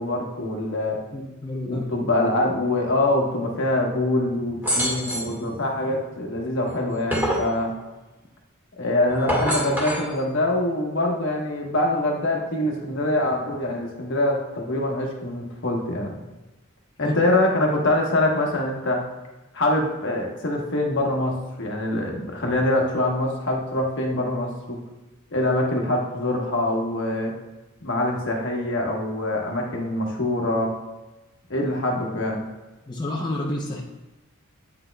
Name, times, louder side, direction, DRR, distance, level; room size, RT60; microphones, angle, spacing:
voice 1, 0.0-1.0 1.7-7.7 8.8-16.2 17.0-19.0 19.5-24.8 25.3-27.3 27.8-30.7 31.5-32.4, left 1 dB, 60° left, 0 dB, 1.2 m, -24 dB
voice 2, 1.1-1.8 17.0-17.1 32.9-33.8, left 1 dB, 20° left, -2 dB, 0.6 m, -29 dB
sound 1, 4.6-5.4 6.7-7.5 9.1-10.1, equal, 10° right, 1.7 m, -25 dB
8.7 x 6.1 x 2.3 m, 1.1 s
head